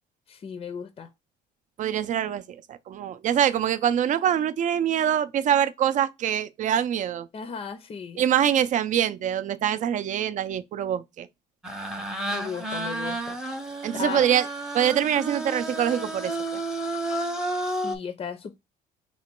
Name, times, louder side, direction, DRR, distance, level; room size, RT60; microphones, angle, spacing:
voice 1, 0.3-1.1 7.3-8.2 12.3-13.4 13.9-14.3 17.6-18.5, left 6 dB, 35° left, 0.5 m, -36 dB
voice 2, 1.8-2.4 2.7-7.3 8.2-11.3 13.8-14.5 14.7-16.6, right 10 dB, 50° right, 0.4 m, -24 dB
sound 1, 11.6-17.9, right 1 dB, 5° right, 0.6 m, -31 dB
3.1 x 2.9 x 4.4 m
cardioid pair, 110°, 17 cm